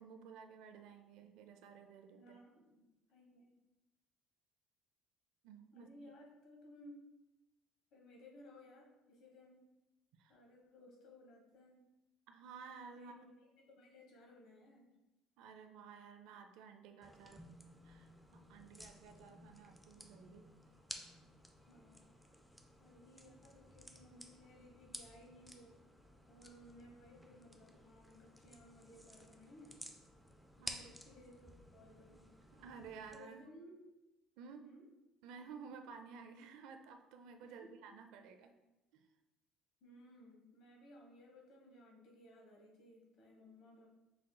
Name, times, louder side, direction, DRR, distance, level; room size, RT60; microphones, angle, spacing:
voice 1, 0.0-2.3 5.4-5.9 10.2-10.4 12.3-13.2 15.4-17.4 17.8-20.5 30.6-30.9 32.5-33.5 34.4-34.6 35.2-38.5 38.9-39.1, right 6 dB, 70° right, 6 dB, 0.4 m, -54 dB
voice 2, 2.1-3.6 5.7-7.1 7.9-9.7 10.3-11.8 12.9-13.3 13.6-14.9 21.7-22.2 22.8-25.8 26.3-29.8 30.6-32.3 33.1-33.8 34.6-34.9 37.4-37.8 39.8-43.9, left 1 dB, 55° left, 0 dB, 1.1 m, -59 dB
sound 1, 17.0-33.2, equal, ahead, 0.3 m, -55 dB
5.7 x 3.7 x 2.2 m, 1.0 s
cardioid pair, 170°, 0 cm